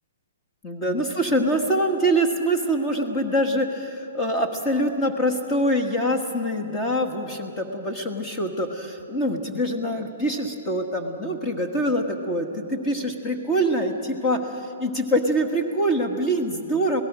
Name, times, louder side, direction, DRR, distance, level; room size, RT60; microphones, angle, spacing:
voice 1, 0.6-14.4 14.8-17.0, right 1 dB, 15° left, 4 dB, 1.5 m, -24 dB
26.5 x 18.0 x 6.1 m, 2.7 s
hypercardioid pair, 170°, 0 cm